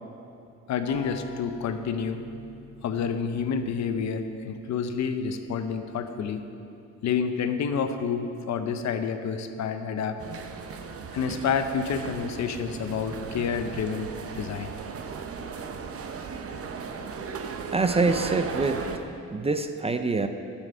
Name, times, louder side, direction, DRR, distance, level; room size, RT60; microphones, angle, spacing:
voice 1, 0.7-2.2 2.8-6.4 7.0-10.2 11.1-14.7, left 6 dB, 65° left, 8 dB, 0.7 m, -29 dB
sound 1, 0.9-4.5, left 5 dB, 20° left, 1.0 m, -47 dB
sound 2, 10.2-19.0, right 5 dB, 50° right, 0.8 m, -36 dB
voice 2, 17.7-20.3, right 3 dB, 20° right, 8 dB, 0.5 m, -26 dB
9.7 x 7.2 x 5.5 m, 2.8 s
cardioid pair, 90°, 30 cm